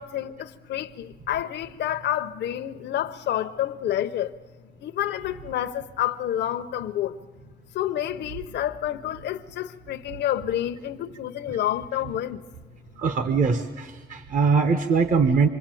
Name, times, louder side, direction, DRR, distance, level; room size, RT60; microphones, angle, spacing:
voice 1, 0.0-4.3 4.8-7.2 7.7-12.4, left 11 dB, 70° left, 0.7 m, -29 dB
voice 2, 13.0-15.5, right 5 dB, 45° right, 1.2 m, -22 dB
26.0 x 23.0 x 9.1 m
cardioid pair, 160°, 18 cm